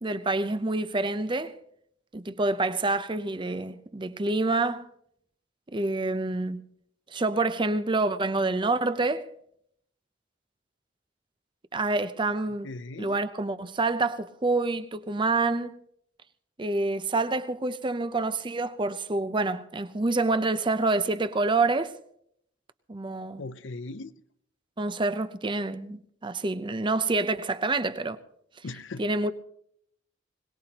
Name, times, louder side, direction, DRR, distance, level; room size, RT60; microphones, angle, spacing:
voice 1, 0.0-1.6 2.1-4.8 5.7-6.6 7.1-9.3 11.7-12.7 13.0-15.8 16.6-22.0 22.9-23.4 24.8-28.2 29.0-29.3, right 3 dB, 25° right, 0.7 m, -27 dB
voice 2, 12.5-13.2 23.4-24.1 28.6-29.1, left 3 dB, 70° left, 0.6 m, -39 dB
22.0 x 19.0 x 2.9 m
head